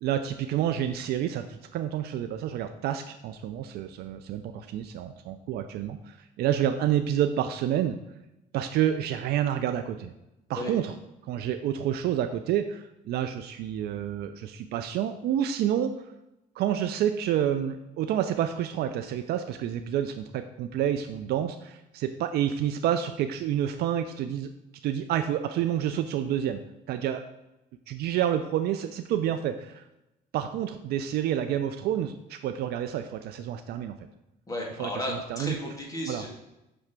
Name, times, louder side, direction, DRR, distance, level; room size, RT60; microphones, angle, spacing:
voice 1, 0.0-8.0 8.5-10.1 10.5-10.9 11.2-15.9 16.6-24.5 24.8-26.6 26.9-27.2 27.9-29.9 30.3-34.0 34.8-35.6 36.0-36.3, right 10 dB, 70° right, 8 dB, 0.4 m, -29 dB
voice 2, 34.5-36.3, left 1 dB, 20° left, -1 dB, 1.8 m, -34 dB
6.1 x 3.2 x 5.8 m, 0.93 s
cardioid pair, 110°, 17 cm